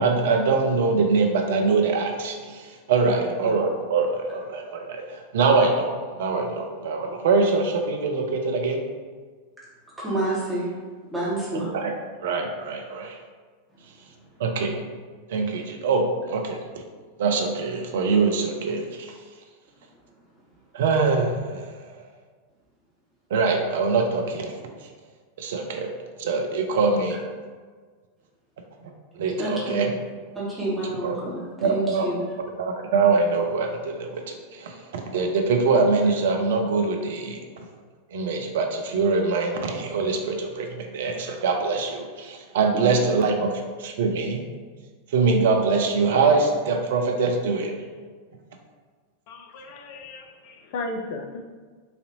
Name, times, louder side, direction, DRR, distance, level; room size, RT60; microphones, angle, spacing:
voice 1, 0.0-8.8 11.7-11.9 12.2-13.2 14.4-14.8 15.3-16.6 17.2-19.1 20.7-21.7 23.3-24.6 25.4-25.9 26.2-27.2 29.2-29.9 31.0-31.2 31.6-32.1 32.6-37.4 38.1-43.5 43.8-44.4 45.1-47.8, right 4 dB, 55° right, 3 dB, 0.5 m, -23 dB
voice 2, 3.1-3.5 10.0-10.7 11.1-11.7 29.4-30.0 30.3-32.2 42.7-43.2, right 1 dB, 5° right, -8 dB, 1.3 m, -29 dB
voice 3, 49.3-51.4, left 2 dB, 45° left, 3 dB, 0.5 m, -35 dB
4.1 x 2.6 x 2.8 m, 1.5 s
figure-of-eight pair, 90°, 0 cm